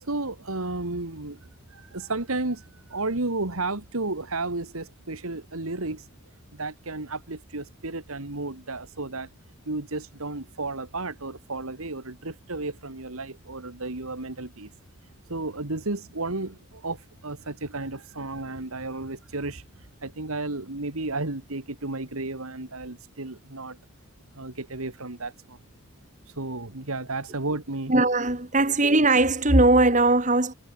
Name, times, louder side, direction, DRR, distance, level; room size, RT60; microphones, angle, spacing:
voice 1, 0.0-6.1 6.5-9.3 9.7-14.7 15.3-19.6 20.0-23.8 24.3-25.6 26.4-27.9, right 2 dB, 80° right, 2.2 m, -33 dB
voice 2, 27.9-30.5, right 2 dB, 35° right, 2.1 m, -19 dB
head